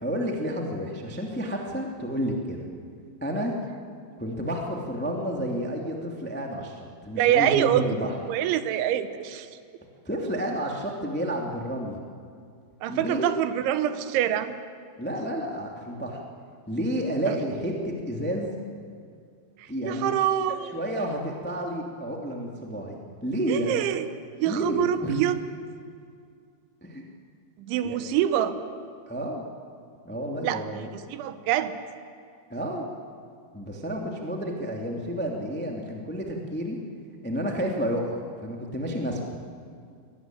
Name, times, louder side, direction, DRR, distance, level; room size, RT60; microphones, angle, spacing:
voice 1, 0.0-2.6 3.2-3.5 4.2-8.2 10.0-12.0 12.9-13.3 15.0-16.2 16.7-18.5 19.7-20.1 20.7-23.8 24.4-25.2 26.8-27.0 27.8-28.0 29.1-29.5 30.0-30.9 32.5-32.9 33.5-36.8 37.2-39.4, equal, 10° left, 0 dB, 0.6 m, -30 dB
voice 2, 7.2-7.9 8.3-9.5 12.8-14.5 17.3-17.4 19.6-20.8 23.5-24.1 24.4-25.3 27.6-28.6 30.4-31.7, right 11 dB, 80° right, 11 dB, 3.2 m, -25 dB
23.0 x 18.5 x 9.2 m, 2.3 s
omnidirectional pair, 5.5 m